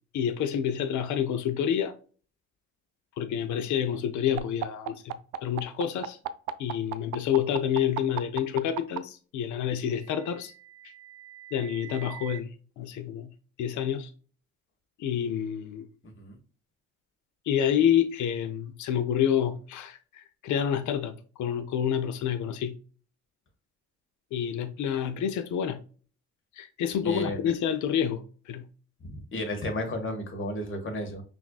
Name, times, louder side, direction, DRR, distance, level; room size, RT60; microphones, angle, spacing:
voice 1, 0.1-1.9 3.2-5.1 5.4-6.2 6.6-10.5 11.5-12.5 12.8-13.3 13.6-14.1 15.0-15.9 17.5-22.7 24.3-25.8 26.6-28.7, left 9 dB, 75° left, 0.6 m, -28 dB
sound 1, 4.4-9.0 10.1-12.4, right 15 dB, 90° right, 0.5 m, -36 dB
voice 2, 27.0-27.5 29.0-31.2, left 1 dB, 40° left, 1.4 m, -33 dB
5.8 x 2.6 x 2.3 m
cardioid pair, 90°, 30 cm